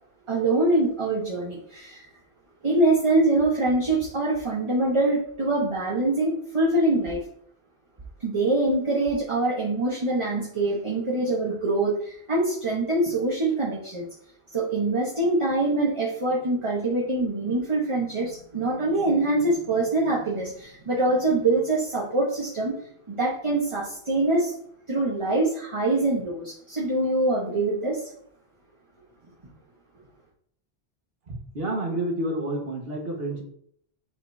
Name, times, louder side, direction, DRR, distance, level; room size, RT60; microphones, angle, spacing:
voice 1, 0.3-2.1 2.6-7.2 8.2-14.1 14.5-22.7 23.1-24.5 24.9-28.1, right 2 dB, 30° right, -3 dB, 1.0 m, -24 dB
voice 2, 31.3-33.4, right 1 dB, 70° right, 0 dB, 1.7 m, -29 dB
7.3 x 5.1 x 2.7 m, 0.66 s
omnidirectional pair, 1.1 m